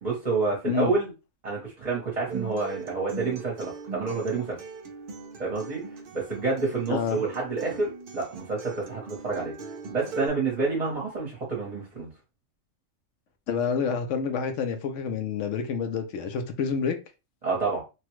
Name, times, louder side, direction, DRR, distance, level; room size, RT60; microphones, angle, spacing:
voice 1, 0.0-1.1 1.4-4.6 5.4-5.8 6.1-9.5 9.9-12.1 17.4-17.8, right 4 dB, 35° right, 0.9 m, -28 dB
Acoustic guitar, 2.3-10.3, right 5 dB, 55° right, 0.6 m, -40 dB
voice 2, 6.9-7.2 13.5-17.0, left 6 dB, 70° left, 0.9 m, -28 dB
3.1 x 2.3 x 3.0 m
omnidirectional pair, 1.5 m